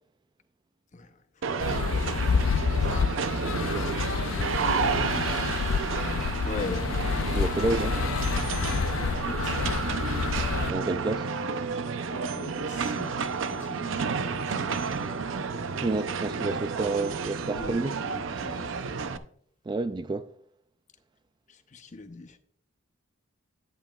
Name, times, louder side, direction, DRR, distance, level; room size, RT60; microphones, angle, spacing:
sound 1, 1.4-19.2, right 5 dB, 70° right, 0.6 m, -31 dB
sound 2, 1.6-10.7, left 6 dB, 85° left, 0.4 m, -28 dB
voice 1, 1.6-3.3 6.4-6.9 9.1-9.6 12.3-15.3 17.4-19.3 21.5-22.4, left 3 dB, 40° left, 0.8 m, -42 dB
voice 2, 3.7-5.6 7.3-8.0 10.2-10.4 10.7-11.3 15.8-18.0 19.7-20.3, right 2 dB, 20° right, 0.3 m, -31 dB
11.0 x 10.5 x 2.3 m
head